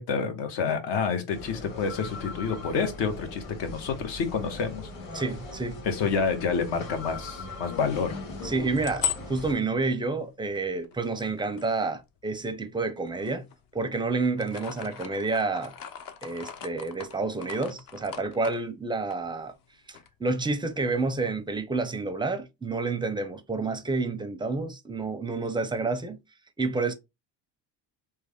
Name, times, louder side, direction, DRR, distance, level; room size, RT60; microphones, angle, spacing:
voice 1, 0.0-4.9 5.8-8.2, left 5 dB, 65° left, 1.1 m, -28 dB
sound 1, 1.3-9.5, left 2 dB, 85° left, 2.0 m, -40 dB
voice 2, 5.1-5.8 8.4-13.5 13.7-15.7 16.2-19.5 19.9-26.2 26.6-26.9, right 3 dB, 10° right, 0.5 m, -29 dB
sound 2, 8.8-12.5 13.1-13.9 14.2-19.7 19.9-20.1 20.4-21.6, left 9 dB, 50° left, 0.7 m, -39 dB
3.3 x 2.2 x 3.4 m
cardioid pair, 100°, 45 cm